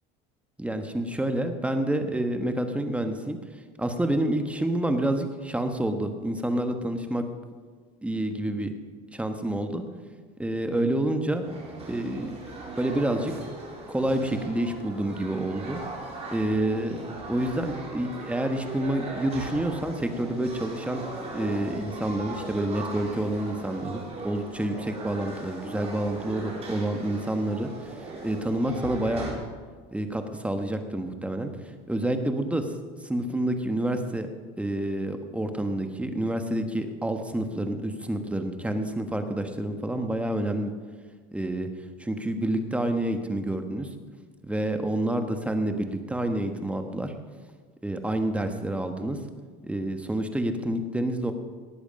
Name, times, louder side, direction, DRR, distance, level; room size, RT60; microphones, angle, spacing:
voice 1, 0.6-3.4 3.8-7.2 8.0-8.7 9.1-9.8 10.4-11.5 11.9-12.4 12.8-13.3 13.9-15.8 16.3-17.0 17.3-21.0 21.3-29.3 29.9-32.7 33.0-34.3 34.6-40.7 41.3-41.7 42.0-43.9 44.4-47.1 47.8-49.2 49.6-51.3, right 1 dB, 5° right, 6 dB, 1.2 m, -28 dB
sound 1, 11.4-29.3, right 2 dB, 30° right, 4.2 m, -39 dB
18.5 x 8.2 x 5.3 m, 1.5 s
supercardioid pair, 120°, 21 cm